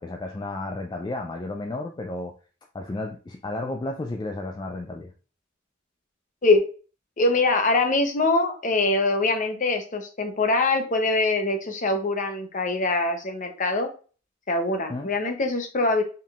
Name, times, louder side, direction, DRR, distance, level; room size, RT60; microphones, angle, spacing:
voice 1, 0.0-2.3 2.7-5.1 14.9-15.1, left 2 dB, 20° left, 3 dB, 0.3 m, -32 dB
voice 2, 7.2-13.9 14.5-16.0, left 2 dB, 40° left, 5 dB, 0.8 m, -23 dB
4.4 x 3.6 x 2.4 m, 0.37 s
head